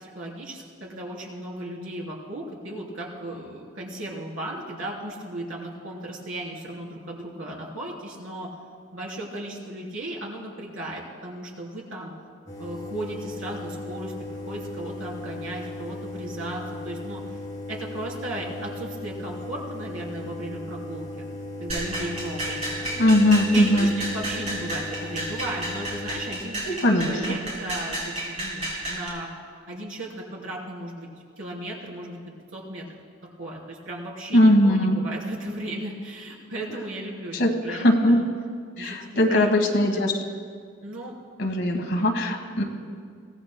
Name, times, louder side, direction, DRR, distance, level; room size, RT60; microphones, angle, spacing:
voice 1, 0.0-8.5 8.9-12.1 12.6-17.4 17.7-21.3 21.6-22.9 23.5-26.8 27.0-29.3 29.7-31.1 31.4-32.2 32.5-32.8 33.4-38.3 38.8-39.0 39.3-40.1 40.8-41.1, right 1 dB, 75° right, -3 dB, 3.3 m, -36 dB
sound 1, 12.5-26.4, left 2 dB, 20° left, 3.3 m, -37 dB
sound 2, 21.7-29.1, right 1 dB, 30° right, 4.4 m, -32 dB
voice 2, 23.0-23.9 26.7-27.4 34.3-35.0 37.3-38.2 38.8-40.1 41.4-42.6, left 1 dB, 55° left, 3 dB, 1.4 m, -20 dB
23.0 x 17.5 x 2.2 m, 2.1 s
head